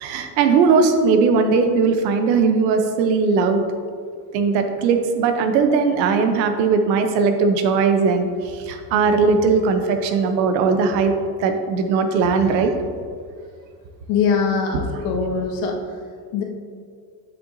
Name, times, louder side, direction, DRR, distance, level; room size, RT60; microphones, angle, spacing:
voice 1, 0.0-3.6 4.3-11.1 11.4-12.7, right 5 dB, 85° right, 6 dB, 0.9 m, -19 dB
voice 2, 14.1-15.8 16.3-16.4, left 5 dB, 65° left, 0 dB, 1.5 m, -22 dB
7.1 x 6.9 x 2.7 m, 2.1 s
supercardioid pair, 90°, 50 cm